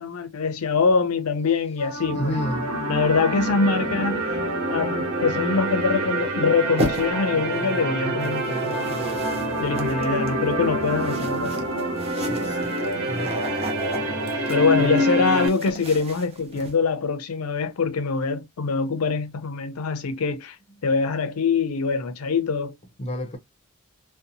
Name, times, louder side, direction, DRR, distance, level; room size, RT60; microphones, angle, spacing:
voice 1, 0.0-2.4 2.9-4.4 4.7-9.1 9.6-11.6 14.5-20.6 20.8-22.7, left 4 dB, 75° left, 0.5 m, -24 dB
sound 1, 1.8-15.5, right 1 dB, 70° right, 0.8 m, -26 dB
voice 2, 2.1-2.7 12.2-12.7 13.1-13.4 14.8-14.9 23.0-23.4, equal, 30° left, 0.5 m, -30 dB
sound 2, 6.8-7.3 8.2-16.7, right 1 dB, 25° right, 0.5 m, -35 dB
2.7 x 2.1 x 2.5 m
head